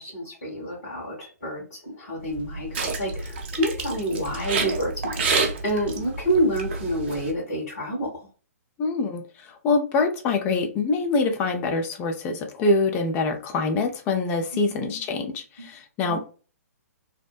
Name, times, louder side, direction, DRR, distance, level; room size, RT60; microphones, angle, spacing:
voice 1, 0.0-8.1 14.7-15.0 15.6-15.7 16.1-16.2, right 1 dB, 60° left, -4 dB, 1.4 m, -28 dB
sound 1, 2.2-7.3, right 4 dB, 40° right, 0.5 m, -30 dB
voice 2, 8.8-9.2 9.6-16.2, left 3 dB, 20° left, 5 dB, 0.5 m, -24 dB
2.8 x 2.1 x 2.3 m, 0.36 s
figure-of-eight pair, 125°, 9 cm